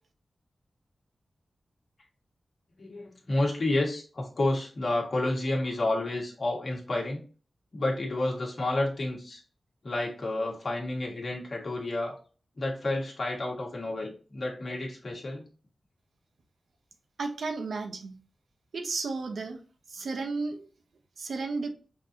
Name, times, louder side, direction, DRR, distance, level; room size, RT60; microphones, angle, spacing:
voice 1, 2.8-7.2 7.7-9.4 9.8-12.1 12.6-15.4, left 2 dB, 60° left, -1 dB, 1.6 m, -30 dB
voice 2, 17.2-18.2 18.7-19.6 19.9-20.7 21.2-21.7, right 3 dB, 80° right, 6 dB, 0.7 m, -33 dB
5.8 x 2.5 x 2.8 m, 0.38 s
cardioid pair, 45°, 0 cm